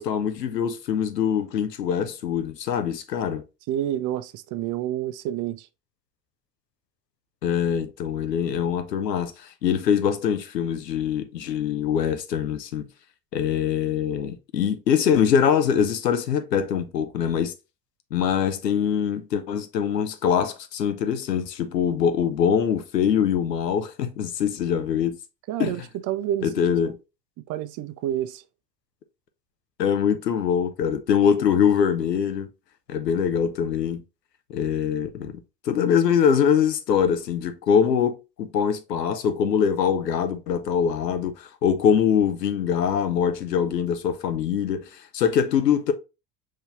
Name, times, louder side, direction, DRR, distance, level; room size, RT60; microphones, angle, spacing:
voice 1, 0.0-3.4 7.4-12.9 13.3-17.5 18.1-25.2 25.6-25.8 26.4-27.0 29.8-32.5 32.9-34.0 34.5-45.9, left 8 dB, 85° left, 0.8 m, -23 dB
voice 2, 3.7-5.7 25.5-26.9 27.4-28.4, right 12 dB, 40° right, 0.5 m, -29 dB
5.3 x 3.2 x 2.5 m
figure-of-eight pair, 65°, 48 cm